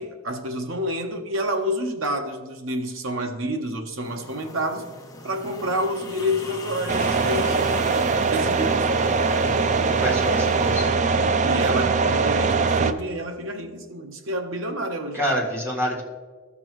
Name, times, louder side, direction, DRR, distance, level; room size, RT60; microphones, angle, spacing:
voice 1, 0.0-4.9 5.2-7.6 8.3-8.9 11.4-15.2, equal, 65° right, 0.9 m, -28 dB
sound 1, 4.0-10.8, left 2 dB, 15° left, 0.8 m, -39 dB
sound 2, 6.9-12.9, right 4 dB, 35° right, 0.4 m, -21 dB
voice 2, 9.9-10.9 15.1-16.0, equal, 10° right, 1.6 m, -27 dB
14.0 x 6.0 x 3.1 m
head